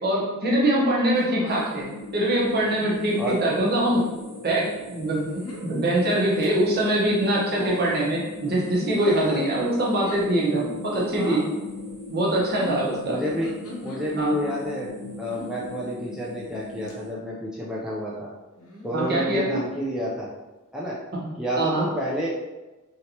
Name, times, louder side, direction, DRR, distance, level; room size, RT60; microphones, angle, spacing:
voice 1, 0.0-1.8 2.1-4.0 4.4-5.2 5.6-11.4 12.1-13.2 14.2-14.4 18.9-19.6 21.2-21.3 21.6-21.9, right 1 dB, 45° right, -5 dB, 0.9 m, -23 dB
sound 1, 1.1-1.7 2.7-3.2 3.8-4.1 5.1-5.7 6.2-6.5 7.2-8.1 8.5-9.4 9.9-10.4 10.9-11.5 12.4-14.0 15.2-15.7 16.3-16.6 16.9-17.0 18.6-19.0 20.0-20.3, equal, 85° left, 0.8 m, -39 dB
sound 2, 1.4-17.1, left 2 dB, 75° right, 1.4 m, -40 dB
voice 2, 13.1-13.5 13.8-14.9 15.2-18.3 18.8-20.3 20.7-21.0 21.4-22.3, equal, 5° right, -6 dB, 0.4 m, -29 dB
3.2 x 2.8 x 2.8 m, 1.1 s
head